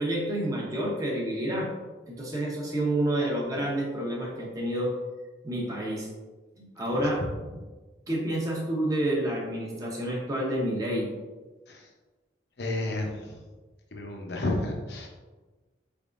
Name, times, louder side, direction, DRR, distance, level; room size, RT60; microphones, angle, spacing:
voice 1, 0.0-1.7 2.1-4.9 5.4-6.1 6.6-7.2 8.1-11.1, right 1 dB, 20° right, -3 dB, 0.7 m, -29 dB
voice 2, 12.6-13.4 13.9-15.1, left 2 dB, 60° left, 0 dB, 0.7 m, -32 dB
4.6 x 3.4 x 2.5 m, 1.3 s
head